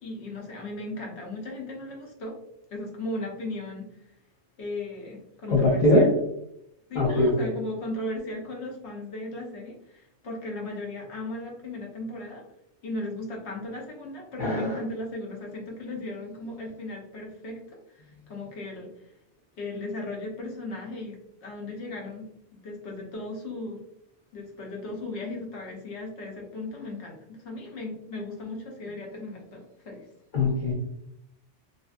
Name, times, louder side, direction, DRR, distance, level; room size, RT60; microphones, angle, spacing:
voice 1, 0.0-2.4 2.7-4.0 4.6-6.1 6.9-12.4 12.8-18.9 19.6-23.8 24.3-30.0, left 2 dB, 70° left, 0 dB, 1.0 m, -36 dB
voice 2, 5.5-6.1 6.9-7.5 14.4-14.7 30.3-30.7, left 1 dB, 50° left, -4 dB, 0.7 m, -21 dB
2.7 x 2.6 x 2.4 m, 0.80 s
omnidirectional pair, 1.2 m